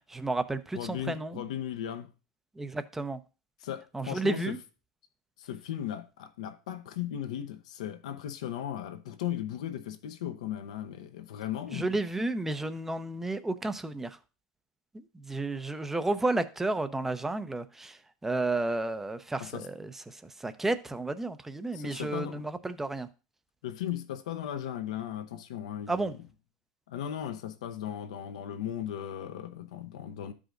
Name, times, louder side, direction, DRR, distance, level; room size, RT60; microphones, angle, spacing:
voice 1, 0.0-1.4 2.6-3.2 3.9-4.6 11.7-14.2 14.9-23.1 25.9-26.1, right 2 dB, 10° right, 0.6 m, -32 dB
voice 2, 0.7-2.1 3.6-4.6 5.4-11.9 19.4-19.7 21.7-22.4 23.6-26.2 26.9-30.3, left 10 dB, 85° left, 0.8 m, -37 dB
12.5 x 4.9 x 2.5 m
supercardioid pair, 105°, 3 cm